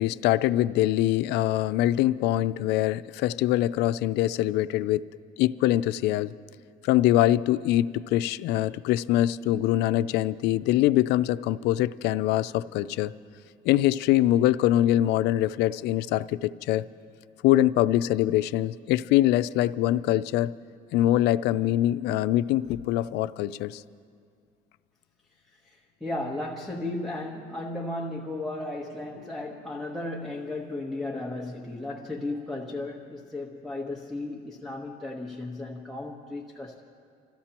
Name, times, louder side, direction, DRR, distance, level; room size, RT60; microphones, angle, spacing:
voice 1, 0.0-5.1 5.4-6.3 6.8-13.1 13.7-16.9 17.4-20.5 20.9-23.8, left 14 dB, 85° left, 15 dB, 0.4 m, -23 dB
voice 2, 26.0-36.8, left 2 dB, ahead, -1 dB, 1.2 m, -35 dB
30.0 x 14.0 x 3.0 m, 2.3 s
cardioid pair, 110°, 17 cm